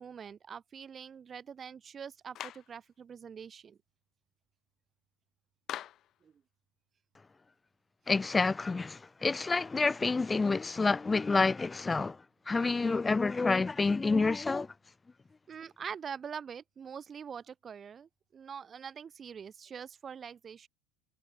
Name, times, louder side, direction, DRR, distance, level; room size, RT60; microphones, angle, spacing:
voice 1, 0.0-3.8 6.2-6.3 15.5-20.7, right 7 dB, 25° right, 2.1 m, -44 dB
Clapping, 2.4-2.7 5.7-6.1, left 12 dB, 40° left, 2.5 m, -41 dB
voice 2, 8.1-12.2 12.5-14.7, left 3 dB, 15° left, 1.8 m, -28 dB
supercardioid pair, 140°, 0 cm